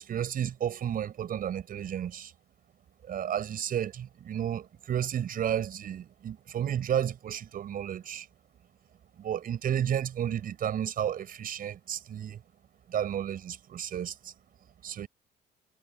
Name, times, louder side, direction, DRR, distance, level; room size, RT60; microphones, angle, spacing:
voice 1, 0.0-2.3 3.1-8.3 9.2-12.4 12.9-14.1 14.8-15.1, right 9 dB, 55° right, 6.2 m, -32 dB
cardioid pair, 100°, 18 cm